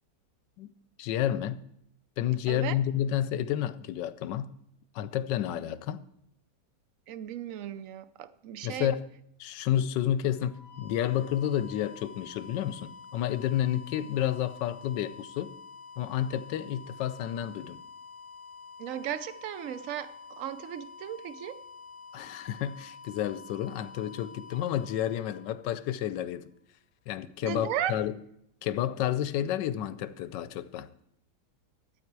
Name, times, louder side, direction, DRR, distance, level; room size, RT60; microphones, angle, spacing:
voice 1, 1.0-1.6 2.2-4.5 4.9-6.0 8.6-9.0 9.4-15.5 16.0-17.8 22.1-26.5 27.1-28.2 28.6-30.9, left 11 dB, 80° left, 1.3 m, -30 dB
voice 2, 7.1-8.9 18.8-21.6 27.4-28.0, right 11 dB, 65° right, 0.8 m, -36 dB
sound 1, 10.3-26.1, left 5 dB, 30° right, 5.0 m, -48 dB
12.5 x 8.6 x 4.6 m
omnidirectional pair, 1.9 m